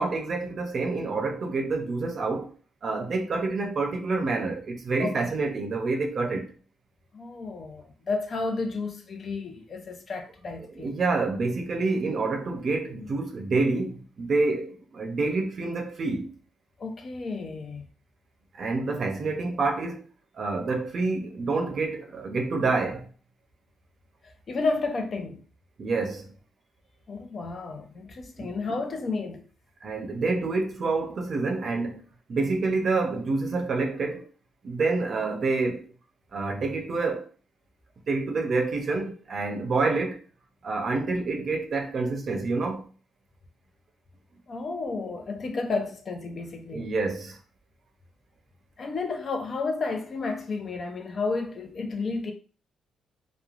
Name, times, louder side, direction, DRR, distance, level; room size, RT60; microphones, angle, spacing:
voice 1, 0.0-2.5 2.8-6.5 10.8-16.3 18.5-20.0 20.3-23.1 25.8-26.3 28.4-28.5 29.8-32.0 32.3-34.3 34.6-35.9 36.3-37.3 38.1-40.2 40.6-42.9 46.7-47.4, right 3 dB, 50° right, 0.6 m, -27 dB
voice 2, 7.1-10.9 16.8-17.9 24.2-25.4 27.1-29.4 44.5-46.9 48.8-52.3, left 3 dB, 45° left, 0.5 m, -32 dB
3.1 x 2.1 x 2.5 m
cardioid pair, 90°, 0 cm